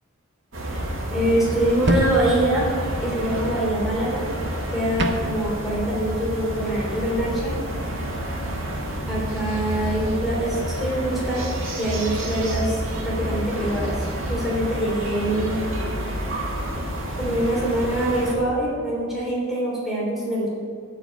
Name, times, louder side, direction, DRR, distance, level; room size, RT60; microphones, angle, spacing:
sound 1, 0.5-18.3, equal, 75° right, 2.2 m, -29 dB
voice 1, 1.1-2.6 3.0-4.2 4.7-7.5 9.1-11.5 11.8-13.9 14.3-15.6 17.2-20.5, right 1 dB, ahead, -7 dB, 3.3 m, -24 dB
sound 2, 1.3-5.9, right 1 dB, 60° right, 1.0 m, -30 dB
13.5 x 5.0 x 8.0 m, 2.2 s
head